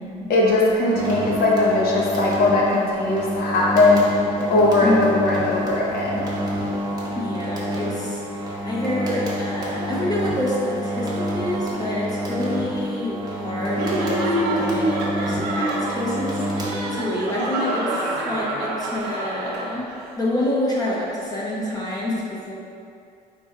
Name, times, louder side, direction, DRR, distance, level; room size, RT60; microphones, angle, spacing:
voice 1, 0.3-4.0 4.5-6.3, left 2 dB, 65° left, -4 dB, 1.0 m, -19 dB
sound 1, 0.8-17.3, equal, 20° right, 0.9 m, -28 dB
voice 2, 4.8-5.2 7.1-19.9 20.2-22.5, left 1 dB, 25° left, -5 dB, 0.7 m, -27 dB
Laughter, 13.7-20.1, right 1 dB, 80° right, 0.6 m, -27 dB
4.3 x 4.2 x 2.4 m, 2.4 s
cardioid pair, 110°, 17 cm